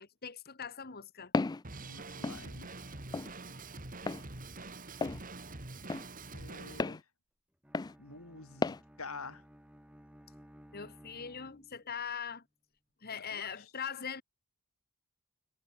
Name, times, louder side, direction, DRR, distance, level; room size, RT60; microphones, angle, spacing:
voice 1, 0.0-1.3 10.7-12.4 13.0-14.2, left 7 dB, 45° left, 1.6 m, -41 dB
Walk footsteps, 1.3-1.6 2.2-2.4 3.1-3.3 4.1-4.2 5.0-5.2 5.9-6.1 6.8-7.0 7.7-7.9 8.6-8.8, left 3 dB, 20° left, 0.3 m, -32 dB
Drum kit, 1.6-6.8, right 3 dB, 35° right, 2.6 m, -45 dB
voice 2, 1.8-2.9 6.3-7.0 8.0-9.4 13.1-13.7, left 4 dB, 70° left, 4.0 m, -48 dB
Bowed string instrument, 7.6-12.0, equal, 5° right, 2.0 m, -57 dB
head